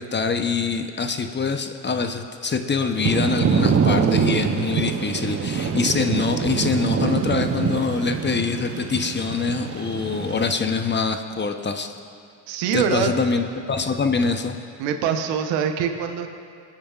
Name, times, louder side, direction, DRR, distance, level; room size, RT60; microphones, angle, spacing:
voice 1, 0.0-11.9 12.7-14.6, left 4 dB, 25° left, 6 dB, 0.8 m, -24 dB
Thunder / Rain, 3.0-10.5, right 6 dB, 35° right, 0.7 m, -24 dB
voice 2, 12.5-13.1 14.8-16.3, right 7 dB, 90° right, 6 dB, 0.9 m, -24 dB
24.5 x 8.9 x 2.4 m, 2.5 s
supercardioid pair, 85°, 43 cm